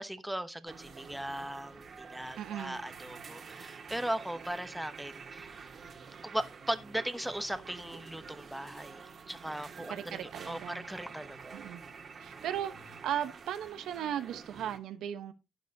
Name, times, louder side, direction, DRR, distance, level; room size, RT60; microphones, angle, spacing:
voice 1, 0.0-5.6 6.2-11.6, right 1 dB, 5° right, 1.0 m, -38 dB
sound 1, 0.7-14.8, right 5 dB, 50° right, 1.9 m, -48 dB
voice 2, 2.4-2.8 9.9-10.8 11.5-11.8 12.2-15.3, right 10 dB, 80° right, 1.0 m, -37 dB
12.0 x 9.1 x 2.8 m
cardioid pair, 90°, 0 cm